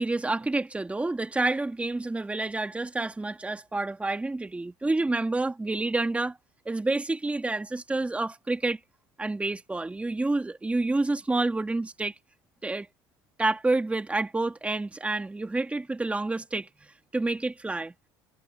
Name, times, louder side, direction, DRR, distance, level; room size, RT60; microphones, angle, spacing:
voice 1, 0.0-6.4 6.7-8.8 9.2-12.1 12.6-12.9 13.4-17.9, right 2 dB, 10° right, 2.1 m, -28 dB
supercardioid pair, 95°, 11 cm